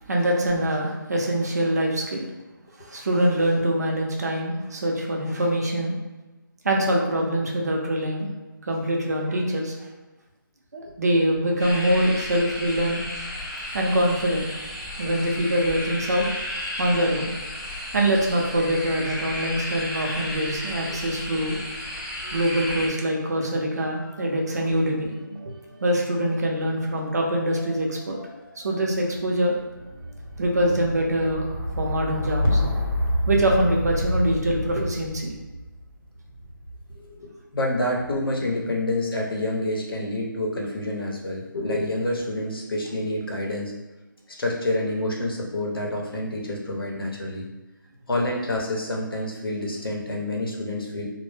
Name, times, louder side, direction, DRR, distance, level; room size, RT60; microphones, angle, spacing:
voice 1, 0.1-2.3 2.8-5.9 6.6-8.3 8.7-9.8 10.7-13.0 13.7-14.5 15.0-16.3 16.8-17.3 17.9-21.6 22.3-25.1 25.8-28.2 28.6-29.5 30.4-32.6 33.3-35.3, right 1 dB, 50° right, 0 dB, 0.5 m, -24 dB
sound 1, 11.6-22.9, left 1 dB, 15° left, 0.3 m, -33 dB
sound 2, 20.3-21.7 21.9-37.0 37.7-38.3, equal, 85° right, 0.7 m, -31 dB
voice 2, 36.9-43.7 44.4-47.4 48.1-51.1, left 1 dB, 90° left, -1 dB, 0.7 m, -28 dB
2.0 x 2.0 x 3.2 m, 1.1 s
figure-of-eight pair, 170°, 12 cm